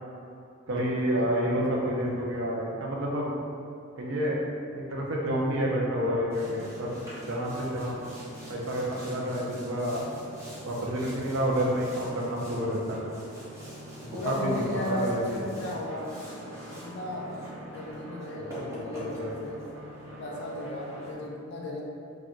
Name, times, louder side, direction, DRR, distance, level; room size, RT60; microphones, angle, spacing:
voice 1, 0.7-3.3 4.0-4.4 4.7-6.9 7.3-7.9 8.5-10.0 10.6-13.0 14.0-15.4 18.3-19.3, equal, 60° right, -3 dB, 0.5 m, -29 dB
Boat Water vehicle, 6.3-21.1, right 1 dB, 15° right, 0.5 m, -43 dB
voice 2, 14.1-16.1 16.7-19.6 20.2-21.8, left 1 dB, 50° left, -2 dB, 0.4 m, -35 dB
2.3 x 2.2 x 3.7 m, 2.5 s
head